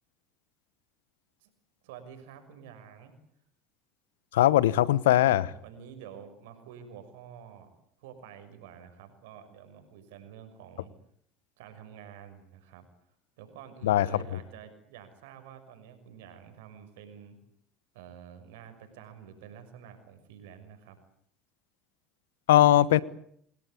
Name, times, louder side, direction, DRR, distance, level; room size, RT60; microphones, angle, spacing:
voice 1, 1.8-3.1 5.1-7.7 8.0-10.9 11.6-12.8 13.4-17.4 17.9-21.0, right 8 dB, 80° right, 8 dB, 6.3 m, -49 dB
voice 2, 4.3-5.5 13.8-14.1 22.5-23.0, left 13 dB, 85° left, 20 dB, 1.1 m, -20 dB
28.0 x 19.5 x 9.7 m, 0.68 s
hypercardioid pair, 75°, 0 cm